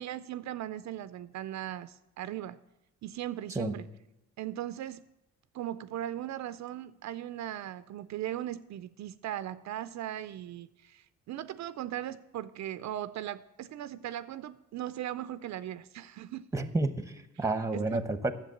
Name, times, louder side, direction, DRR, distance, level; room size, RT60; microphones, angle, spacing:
voice 1, 0.0-2.6 3.0-3.9 4.4-5.0 5.5-16.5 17.4-17.5 17.7-18.1, right 12 dB, 65° right, 14 dB, 0.5 m, -38 dB
voice 2, 16.5-18.3, right 2 dB, 10° right, 11 dB, 0.9 m, -30 dB
9.9 x 7.3 x 7.8 m, 0.91 s
cardioid pair, 90°, 30 cm